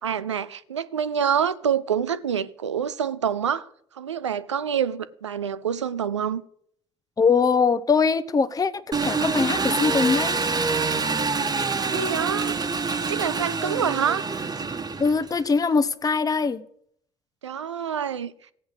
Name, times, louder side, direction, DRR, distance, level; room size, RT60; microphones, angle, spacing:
voice 1, 0.0-3.7 3.9-6.4 11.9-12.6 13.0-14.3 17.4-18.3, right 8 dB, 85° right, 0.6 m, -26 dB
voice 2, 7.2-10.4 15.0-16.6, left 5 dB, 25° left, 1.0 m, -22 dB
Engine, 8.9-15.4, right 4 dB, 25° right, 1.4 m, -26 dB
16.0 x 8.1 x 8.1 m
figure-of-eight pair, 55°, 15 cm